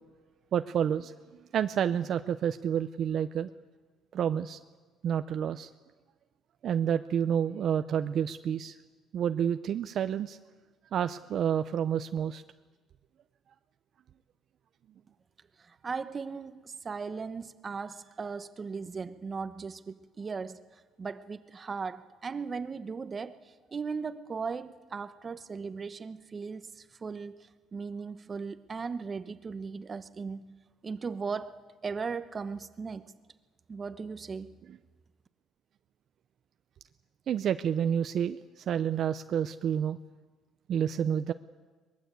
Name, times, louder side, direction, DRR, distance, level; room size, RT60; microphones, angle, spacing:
voice 1, 0.5-1.1 1.5-3.5 4.1-4.6 5.0-5.7 6.6-8.8 9.1-10.4 10.9-12.4 34.7-34.8 37.3-40.0 40.7-41.3, right 8 dB, 50° right, 0.6 m, -29 dB
voice 2, 15.6-20.6 21.0-30.5 30.8-31.6 31.8-33.0 33.7-34.6, right 5 dB, 30° right, 1.0 m, -37 dB
22.5 x 20.5 x 8.3 m
cardioid pair, 120°, 0 cm